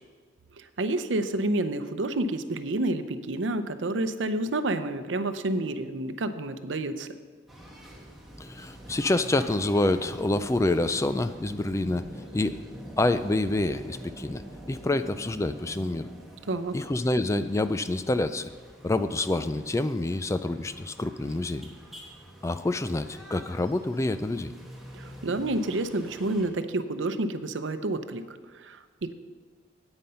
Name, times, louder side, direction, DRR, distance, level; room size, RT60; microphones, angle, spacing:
voice 1, 0.6-7.1 16.5-16.8 24.9-29.1, right 2 dB, 85° right, 10 dB, 0.7 m, -29 dB
sound 1, 7.5-26.5, equal, ahead, 1.4 m, -46 dB
voice 2, 8.4-12.0 12.3-12.6 13.0-14.4 14.7-16.1 16.7-18.5 18.8-21.7 22.4-24.5, left 2 dB, 15° left, 11 dB, 0.3 m, -27 dB
9.4 x 8.9 x 5.6 m, 1.5 s
head